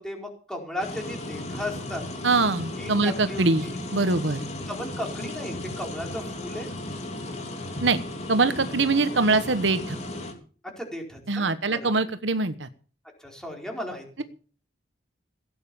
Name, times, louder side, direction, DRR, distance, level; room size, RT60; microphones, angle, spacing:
voice 1, 0.0-2.0 2.8-3.8 4.7-6.7 10.8-11.9 13.2-14.2, left 1 dB, 5° left, 1 dB, 4.4 m, -35 dB
sound 1, 0.8-10.3, left 1 dB, 35° left, 3.3 m, -35 dB
voice 2, 2.2-3.7 3.9-4.5 7.8-8.0 8.3-10.0 11.3-12.7, right 3 dB, 75° right, 11 dB, 1.2 m, -23 dB
16.5 x 9.4 x 7.0 m, 0.41 s
head